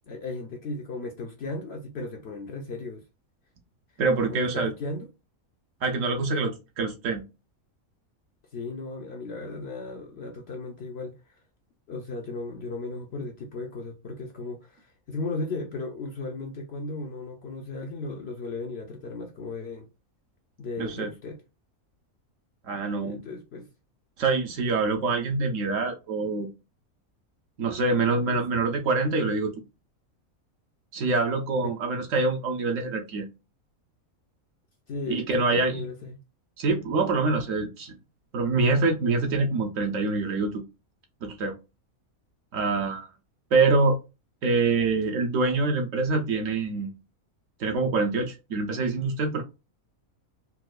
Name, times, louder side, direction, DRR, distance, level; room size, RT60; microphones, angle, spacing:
voice 1, 0.1-3.0 4.3-5.1 8.5-11.4 11.9-19.9 20.6-21.4 23.0-23.7 28.3-28.5 34.9-36.2, left 3 dB, 60° left, 0.7 m, -36 dB
voice 2, 4.0-4.7 5.8-7.2 20.8-21.1 22.7-23.2 24.2-26.5 27.6-29.5 30.9-33.2 35.1-35.8 36.6-37.9 38.3-40.6 41.2-41.6 42.5-43.1 43.5-44.0 44.4-46.9 47.6-49.4, right 3 dB, 65° right, 1.0 m, -25 dB
4.3 x 2.3 x 2.2 m
omnidirectional pair, 1.5 m